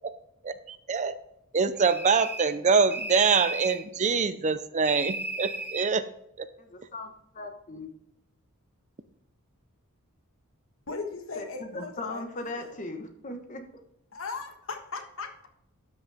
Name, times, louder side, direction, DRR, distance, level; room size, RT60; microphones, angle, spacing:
voice 1, 0.4-1.2 1.5-6.0 6.4-6.5, right 5 dB, 30° right, 12 dB, 0.5 m, -25 dB
sound 1, 1.8-2.6 2.9-3.9 4.8-5.9, right 2 dB, 10° right, 0.8 m, -35 dB
voice 2, 6.6-7.9 11.4-11.5 11.7-13.6, left 2 dB, 35° left, 5 dB, 1.3 m, -38 dB
voice 3, 10.9-12.7 14.1-15.5, left 4 dB, 60° left, 5 dB, 1.5 m, -38 dB
12.5 x 6.3 x 3.5 m, 0.78 s
head